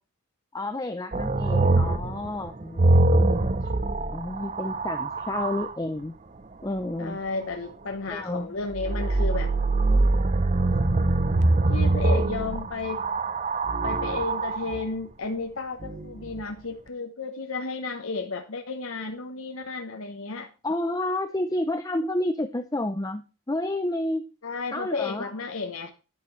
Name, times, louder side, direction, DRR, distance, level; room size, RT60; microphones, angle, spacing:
voice 1, 0.5-3.7 4.1-6.1 6.6-7.2 8.1-8.6 20.6-24.3 24.7-25.3, left 1 dB, 15° left, 8 dB, 0.6 m, -30 dB
sound 1, 1.1-5.7 8.7-14.8 15.8-16.4, right 2 dB, 35° right, 0.6 m, -23 dB
voice 2, 7.0-9.5 11.7-13.0 13.8-20.5 24.4-25.9, left 3 dB, 75° left, 4 dB, 1.0 m, -33 dB
11.0 x 10.5 x 3.2 m, 0.32 s
head